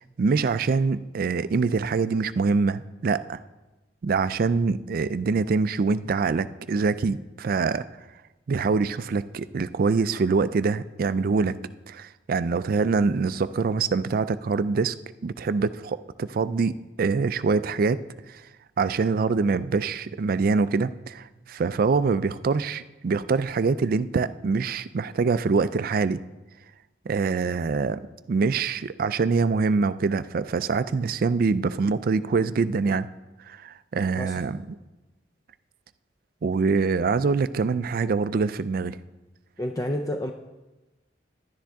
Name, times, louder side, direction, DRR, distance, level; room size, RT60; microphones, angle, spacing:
voice 1, 0.0-3.4 4.0-7.8 8.5-14.9 15.2-18.0 18.3-18.4 18.8-26.2 27.1-28.0 28.3-33.1 33.5-34.6 36.4-39.0, right 4 dB, 50° right, 14 dB, 0.4 m, -24 dB
voice 2, 34.2-34.6 39.6-40.3, left 1 dB, 20° left, 4 dB, 0.4 m, -30 dB
11.0 x 10.0 x 3.5 m, 1.1 s
head